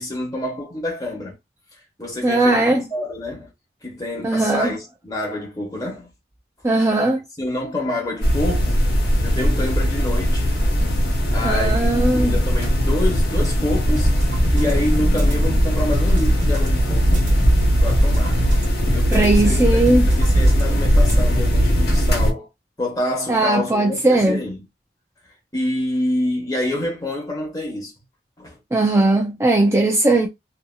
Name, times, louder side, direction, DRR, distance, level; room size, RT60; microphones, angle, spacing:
voice 1, 0.0-1.3 2.0-3.5 3.8-6.1 7.4-8.8 9.2-10.5 11.3-14.1 14.5-17.3 17.8-18.4 18.9-19.7 20.0-22.5 22.8-24.6 25.5-27.9 28.4-28.6, left 1 dB, 20° left, 1.2 m, -27 dB
voice 2, 2.2-2.8 4.2-4.7 6.6-7.2 11.4-12.4 19.1-20.1 23.3-24.4 28.7-30.3, right 2 dB, 15° right, 0.3 m, -18 dB
sound 1, 8.2-22.3, equal, 70° left, 1.2 m, -19 dB
sound 2, 14.0-21.7, equal, 45° right, 1.0 m, -25 dB
2.8 x 2.6 x 2.2 m
head